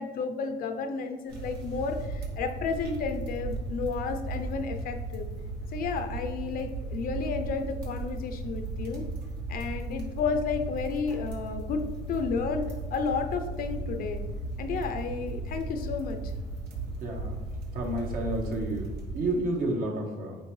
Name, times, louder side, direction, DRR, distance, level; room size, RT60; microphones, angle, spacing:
voice 1, 0.0-5.3 5.7-9.1 9.5-11.8 12.1-12.6 12.9-14.2 14.6-16.2, left 5 dB, 60° left, 6 dB, 0.7 m, -32 dB
sound 1, 1.3-19.6, right 2 dB, 80° right, 1.3 m, -36 dB
voice 2, 17.0-17.4 17.7-20.4, right 1 dB, 55° right, 0 dB, 1.4 m, -31 dB
9.0 x 3.4 x 3.2 m, 1.2 s
cardioid pair, 110°, 17 cm